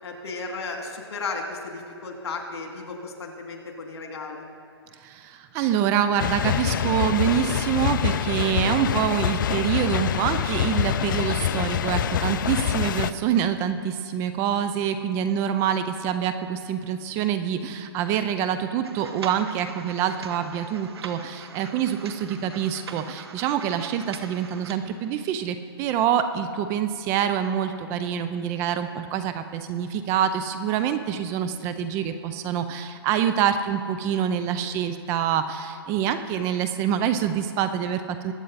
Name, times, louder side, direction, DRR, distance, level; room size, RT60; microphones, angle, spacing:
voice 1, 0.0-4.4, left 3 dB, 70° left, 2 dB, 2.7 m, -34 dB
voice 2, 5.0-38.3, right 9 dB, 20° right, 9 dB, 0.5 m, -26 dB
sound 1, 6.2-13.1, left 10 dB, 50° left, 0.5 m, -25 dB
sound 2, 18.8-24.7, right 5 dB, 70° right, 1.2 m, -42 dB
21.0 x 8.9 x 4.1 m, 2.5 s
hypercardioid pair, 150°, 14 cm